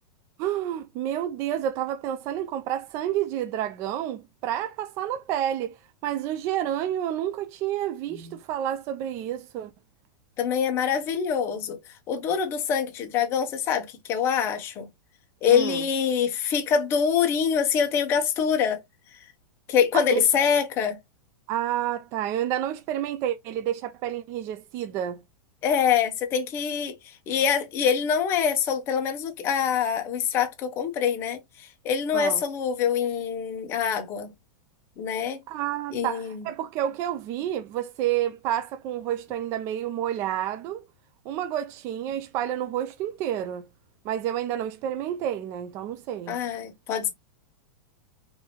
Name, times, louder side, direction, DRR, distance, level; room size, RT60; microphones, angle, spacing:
voice 1, 0.4-5.8 6.0-9.7 15.5-15.8 19.9-20.2 21.5-25.2 32.1-32.4 35.5-40.8 41.3-43.6 44.0-46.4, right 11 dB, 25° right, 0.3 m, -29 dB
voice 2, 10.4-11.8 12.1-14.9 15.4-18.8 19.7-21.0 25.6-34.3 35.0-35.4 35.9-36.4 46.3-47.1, left 7 dB, 25° left, 0.8 m, -25 dB
4.6 x 2.6 x 3.1 m
supercardioid pair, 165°, 11 cm